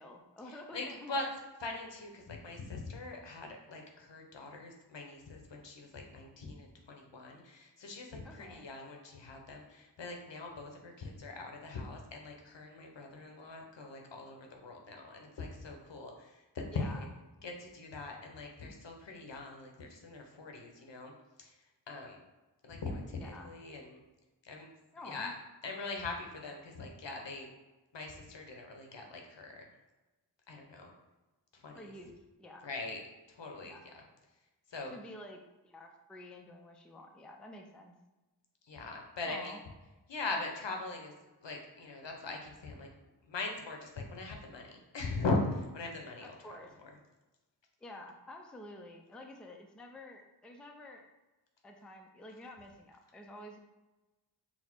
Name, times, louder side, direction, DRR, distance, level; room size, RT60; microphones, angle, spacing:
voice 1, 0.0-1.3 8.2-8.7 16.7-17.0 23.2-23.5 24.9-25.3 31.7-32.7 33.6-33.9 34.9-37.9 39.3-39.6 46.2-46.7 47.8-51.0 51.6-53.6, left 1 dB, ahead, 3 dB, 0.4 m, -49 dB
voice 2, 0.7-1.2 1.6-17.0 17.4-21.1 21.4-21.5 21.9-22.2 22.6-24.0 24.4-24.7 25.0-25.3 25.6-27.5 27.9-29.6 30.5-30.9 31.6-31.8 32.6-33.0 33.4-33.8 34.7-34.9 38.7-39.5 40.1-41.1 41.4-42.9 43.3-46.4, left 3 dB, 75° left, 2 dB, 0.8 m, -41 dB
4.1 x 2.1 x 4.4 m, 1.1 s
wide cardioid pair, 60°, 44 cm